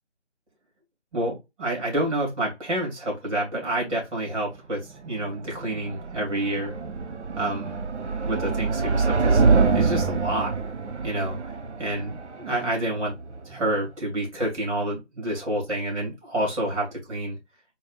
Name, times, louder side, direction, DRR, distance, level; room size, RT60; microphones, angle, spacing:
voice 1, 1.1-6.8 7.4-7.8 8.3-10.5 11.0-11.4 11.8-13.1 13.4-17.4, right 1 dB, 30° right, 2.5 m, -28 dB
sound 1, 4.9-13.9, right 4 dB, 75° right, 0.7 m, -26 dB
4.3 x 2.1 x 4.1 m
figure-of-eight pair, 160°, 35 cm